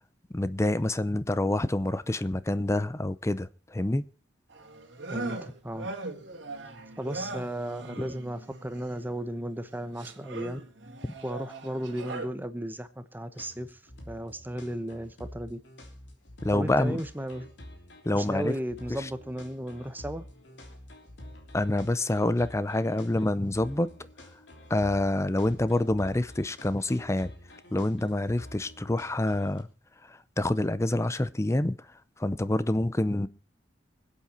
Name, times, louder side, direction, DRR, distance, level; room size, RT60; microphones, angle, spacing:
voice 1, 0.3-4.0 16.4-17.0 18.0-18.5 21.5-23.9 24.7-27.3 27.7-29.7 30.1-31.8 32.2-33.3, left 1 dB, 15° left, 0.6 m, -27 dB
sound 1, 4.5-9.2 9.6-12.3, right 2 dB, 85° right, 2.1 m, -40 dB
voice 2, 5.1-5.9 7.0-10.6 11.2-13.8 14.1-15.6 16.5-17.5 18.1-20.3, right 1 dB, 10° right, 0.9 m, -35 dB
sound 2, 13.3-29.6, left 1 dB, 70° left, 3.2 m, -48 dB
25.0 x 8.5 x 4.4 m
head